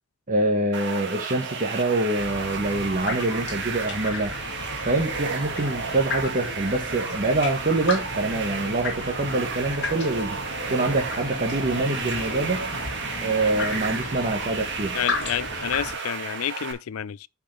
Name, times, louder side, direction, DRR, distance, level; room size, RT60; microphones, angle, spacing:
voice 1, 0.3-4.3 4.8-10.4 10.7-12.6 13.2-15.0, right 2 dB, 40° right, 1.4 m, -25 dB
sound 1, 0.7-16.7, right 5 dB, 60° right, 1.7 m, -33 dB
sound 2, 2.2-15.9, left 3 dB, 60° left, 2.2 m, -34 dB
voice 2, 14.9-17.3, left 10 dB, 85° left, 0.4 m, -29 dB
7.9 x 6.7 x 3.2 m
head